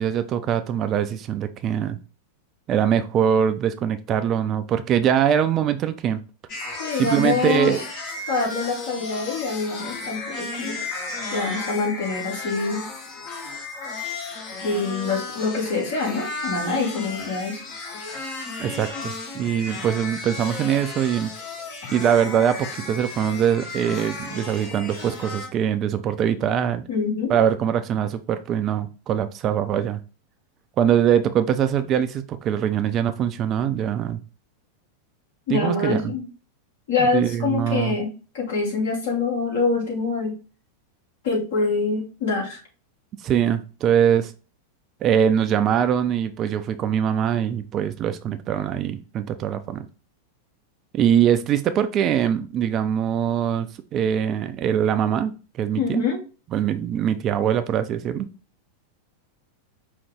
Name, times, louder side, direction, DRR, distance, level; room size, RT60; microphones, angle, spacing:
voice 1, 0.0-2.0 2.7-6.2 7.0-7.8 18.6-21.3 21.9-26.8 27.3-30.0 30.8-34.2 35.5-36.1 37.0-37.9 43.2-44.3 45.0-49.9 50.9-56.0 56.5-58.3, right 9 dB, 30° right, 10 dB, 0.4 m, -22 dB
sound 1, 6.5-25.5, left 3 dB, 40° left, 1.2 m, -34 dB
voice 2, 6.8-7.7 8.3-10.8 11.3-12.8 14.6-17.6 26.9-27.3 35.5-36.2 36.9-40.3 41.2-42.6 55.8-56.2, left 4 dB, 55° left, -3 dB, 2.5 m, -25 dB
5.3 x 2.7 x 3.4 m, 0.33 s
figure-of-eight pair, 90°, 0 cm